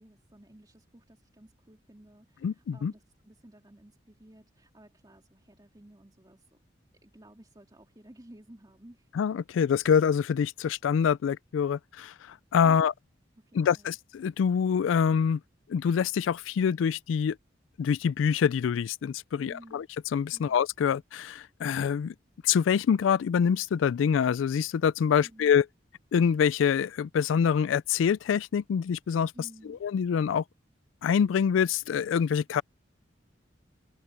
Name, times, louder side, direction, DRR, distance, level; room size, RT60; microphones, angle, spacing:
voice 1, 0.0-6.6 7.0-9.1 12.6-12.9 13.4-14.0 19.3-19.8 20.3-20.6 25.2-25.5 29.3-29.8, right 1 dB, 20° right, 2.9 m, -54 dB
voice 2, 2.4-2.9 9.2-12.9 13.5-15.4 15.7-17.4 17.8-19.9 20.1-22.1 22.4-25.7 26.1-29.3 29.6-30.4 31.0-32.6, left 7 dB, 90° left, 0.3 m, -25 dB
head